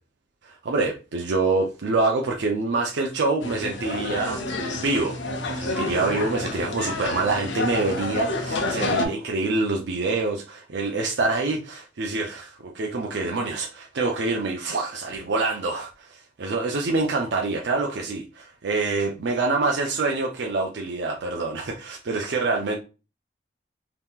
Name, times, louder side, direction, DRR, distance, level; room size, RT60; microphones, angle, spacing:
voice 1, 0.4-4.4 4.7-5.2 5.5-22.8, right 3 dB, 75° right, 0.5 m, -26 dB
sound 1, 3.4-9.1, left 2 dB, 85° left, 0.7 m, -29 dB
3.5 x 2.9 x 2.3 m
head